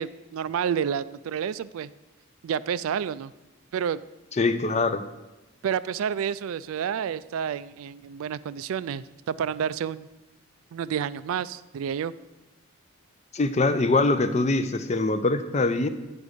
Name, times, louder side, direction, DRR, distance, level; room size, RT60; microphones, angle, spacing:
voice 1, 0.0-1.9 2.4-3.3 3.7-4.0 5.6-10.1 10.7-12.1, right 8 dB, 75° right, 16 dB, 0.3 m, -29 dB
voice 2, 4.4-5.0 13.3-15.9, left 3 dB, 30° left, 11 dB, 0.4 m, -23 dB
9.7 x 5.2 x 6.5 m, 1.1 s
head